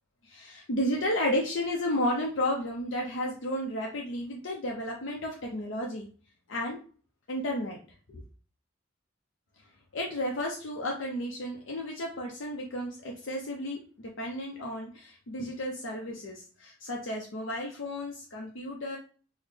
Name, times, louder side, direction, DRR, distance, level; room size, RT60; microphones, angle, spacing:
voice 1, 0.2-6.1 6.5-6.8 7.3-7.8 8.1-8.2 9.9-19.0, left 1 dB, 80° left, 0 dB, 0.6 m, -32 dB
3.9 x 2.1 x 3.2 m, 0.41 s
head